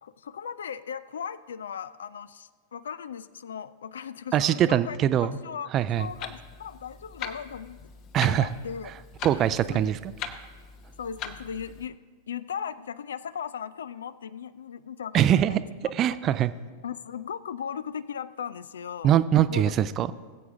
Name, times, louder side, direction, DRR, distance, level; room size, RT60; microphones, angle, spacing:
voice 1, 0.0-7.8 8.2-8.9 9.4-10.0 11.0-12.0 12.3-15.6 16.8-19.2 19.5-19.8, left 7 dB, 65° left, 17 dB, 0.4 m, -37 dB
voice 2, 4.3-5.4 5.7-6.1 8.1-8.5 9.2-10.1 15.1-15.6 15.9-16.5 19.0-20.1, right 11 dB, 30° right, 14 dB, 0.5 m, -22 dB
Clock, 5.9-11.9, left 6 dB, 40° left, 0.9 m, -41 dB
20.0 x 8.2 x 3.6 m, 1.4 s
figure-of-eight pair, 90°, 0 cm